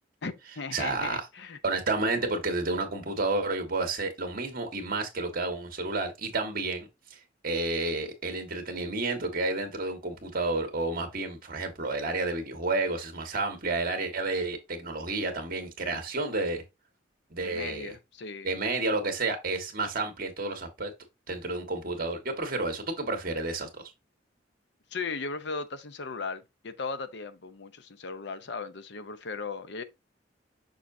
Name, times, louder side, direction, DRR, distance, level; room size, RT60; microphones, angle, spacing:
voice 1, 0.2-1.6 17.4-18.5 24.9-29.8, left 4 dB, 70° left, 0.7 m, -37 dB
voice 2, 0.7-1.2 1.6-16.6 17.3-17.9 18.4-20.9 21.3-23.8, right 3 dB, 50° right, 1.6 m, -31 dB
6.3 x 5.7 x 2.7 m
head